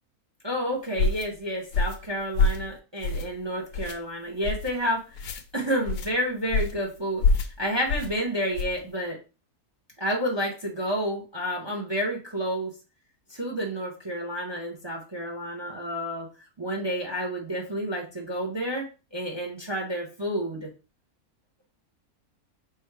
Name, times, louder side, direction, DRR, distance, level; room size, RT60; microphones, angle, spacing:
voice 1, 0.4-5.3 5.5-9.2 10.0-12.7 13.3-16.3 16.6-18.8 19.1-20.7, equal, 25° right, 0 dB, 0.6 m, -30 dB
sound 1, 1.0-1.3 1.7-2.0 2.4-2.7 3.0-3.4 3.7-4.0 4.4-4.7 5.2-5.4 5.9-6.1 6.5-6.8 7.2-7.5 7.9-8.1 8.5-8.8, left 3 dB, 90° left, 1.1 m, -25 dB
3.3 x 3.0 x 4.5 m, 0.33 s
omnidirectional pair, 1.6 m